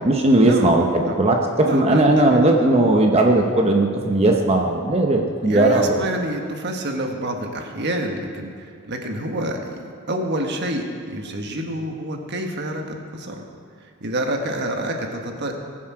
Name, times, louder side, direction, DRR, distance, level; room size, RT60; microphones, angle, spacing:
voice 1, 0.0-6.0, right 2 dB, 30° right, 2 dB, 0.8 m, -17 dB
voice 2, 1.6-2.4 5.5-13.4 14.0-15.6, right 1 dB, 50° right, 3 dB, 1.4 m, -28 dB
20.0 x 7.5 x 4.9 m, 2.2 s
head